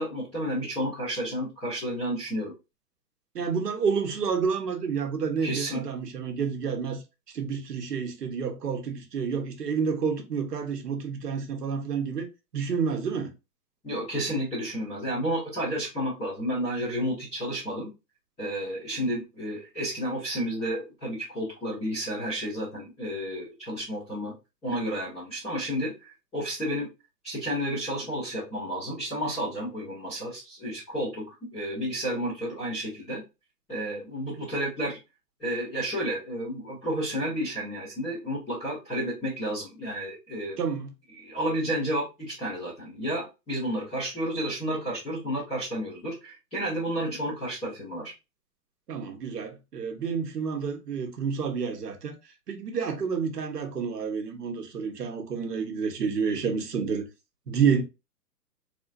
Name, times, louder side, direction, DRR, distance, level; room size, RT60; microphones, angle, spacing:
voice 1, 0.0-2.5 5.4-5.8 13.8-17.9 18.4-24.3 24.6-26.9 27.2-33.2 33.7-35.0 35.4-40.6 41.2-48.1, equal, ahead, 0.4 m, -31 dB
voice 2, 3.3-7.0 7.3-12.3 12.5-13.3 19.0-19.1 40.6-40.9 48.9-52.2 52.5-57.1 57.5-57.8, right 6 dB, 70° right, 1.5 m, -29 dB
4.1 x 4.1 x 2.6 m
hypercardioid pair, 130°, 49 cm